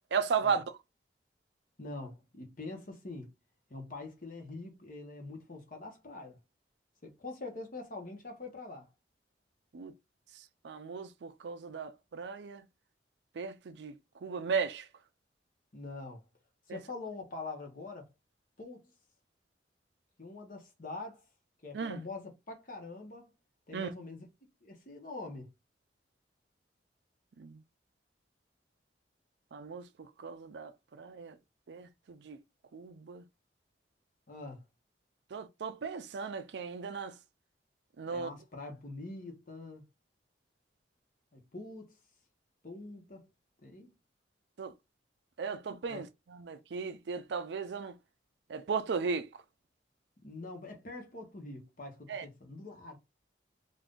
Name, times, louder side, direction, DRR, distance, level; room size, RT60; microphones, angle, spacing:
voice 1, 0.1-0.6 9.7-9.9 10.6-12.6 13.4-13.9 14.2-14.9 16.7-16.8 21.7-22.0 23.7-23.9 27.4-27.6 29.5-29.8 30.2-31.4 31.7-32.4 32.7-33.2 35.3-37.1 38.0-38.3 44.6-44.7 45.4-47.9 48.5-49.3 52.1-52.2, right 5 dB, 70° right, 0.4 m, -36 dB
voice 2, 1.8-3.3 3.7-6.4 7.0-8.9 15.7-16.2 16.7-18.1 18.6-18.9 20.2-21.2 21.6-23.3 23.7-24.3 24.6-25.5 34.3-34.6 38.0-39.8 41.3-42.0 42.6-43.3 43.6-43.9 45.9-46.1 50.2-53.0, left 3 dB, 50° left, 1.0 m, -44 dB
2.6 x 2.5 x 3.5 m
head